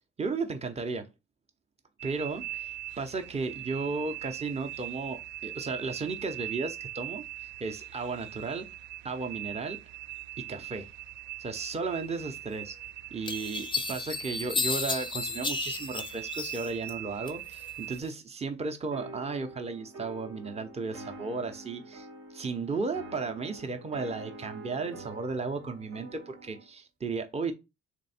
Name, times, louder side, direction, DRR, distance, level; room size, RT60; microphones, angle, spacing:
voice 1, 0.2-1.1 2.0-8.7 9.0-9.8 10.4-10.9 11.4-12.8 13.1-22.1 22.3-27.5, right 4 dB, 20° right, 0.7 m, -34 dB
sound 1, 2.0-18.0, right 14 dB, 75° right, 0.5 m, -41 dB
creaking glass slowed down, 12.5-12.6 13.3-16.9 17.3-18.0, left 4 dB, 15° left, 0.5 m, -33 dB
sound 2, 18.9-26.7, right 2 dB, 50° right, 0.9 m, -46 dB
3.4 x 3.0 x 4.2 m
cardioid pair, 90°, 30 cm